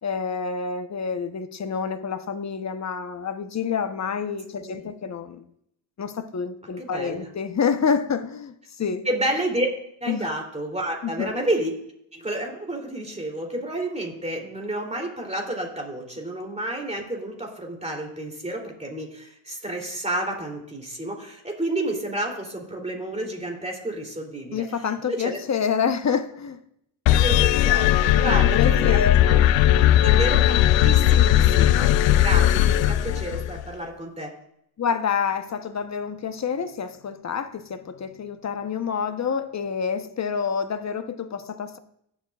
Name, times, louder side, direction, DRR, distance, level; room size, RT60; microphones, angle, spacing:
voice 1, 0.0-5.4 6.0-9.0 10.1-10.3 11.0-11.3 24.5-26.6 28.2-29.2 34.8-41.8, left 6 dB, 35° left, 0.9 m, -28 dB
voice 2, 6.8-7.3 9.0-9.7 10.0-11.7 12.1-24.6 25.1-25.4 27.1-29.0 29.3-29.4 30.0-34.3, right 1 dB, 15° right, 3.0 m, -30 dB
sound 1, 27.1-33.6, left 12 dB, 70° left, 0.6 m, -18 dB
18.5 x 7.4 x 2.4 m
cardioid pair, 80°, 47 cm